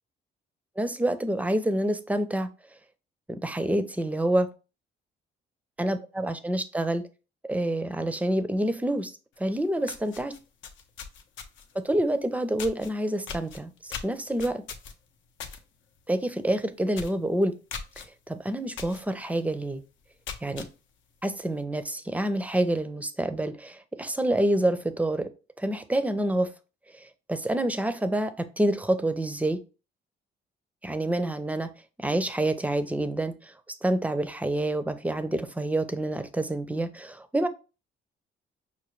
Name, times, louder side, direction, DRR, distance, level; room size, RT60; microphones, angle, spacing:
voice 1, 0.8-2.5 3.4-4.5 5.8-7.0 7.5-9.1 9.4-10.3 11.8-13.7 14.0-14.6 16.1-17.5 18.3-19.8 20.4-20.7 21.2-25.3 25.6-26.5 27.3-29.6 30.8-31.7 32.0-33.3 33.8-37.5, right 1 dB, 5° right, 0.5 m, -27 dB
sound 1, 9.4-9.5 9.8-11.8 12.6-12.9 13.3-15.6 16.0-16.2 16.5-16.6 16.9-17.2 17.7-18.1 18.8-19.0 19.5-19.6 20.1-20.7, left 6 dB, 75° left, 0.7 m, -39 dB
5.6 x 2.2 x 3.1 m
cardioid pair, 90°, 20 cm